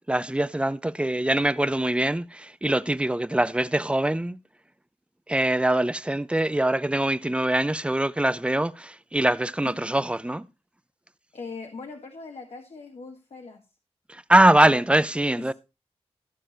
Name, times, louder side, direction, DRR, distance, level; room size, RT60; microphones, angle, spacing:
voice 1, 0.1-4.4 5.3-10.5 14.1-15.5, right 1 dB, 10° right, 0.6 m, -23 dB
voice 2, 11.3-13.6 14.6-14.8 15.4-15.5, left 4 dB, 70° left, 1.8 m, -40 dB
14.5 x 7.0 x 4.5 m
wide cardioid pair, 100°, 11 cm